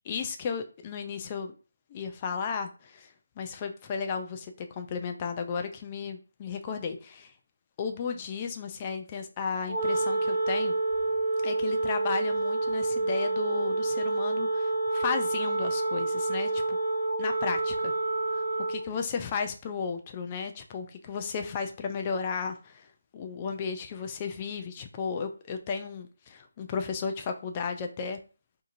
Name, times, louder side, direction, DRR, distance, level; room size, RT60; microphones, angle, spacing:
voice 1, 0.1-1.6 1.9-7.3 7.8-10.8 11.4-16.8 17.2-18.0 18.3-22.9 23.1-28.2, left 5 dB, 25° left, 5 dB, 0.4 m, -34 dB
Wind instrument woodwind instrument, 9.7-18.9, right 2 dB, 70° right, 0.7 m, -28 dB
2.7 x 2.5 x 2.5 m, 0.36 s
figure-of-eight pair, 155°, 0 cm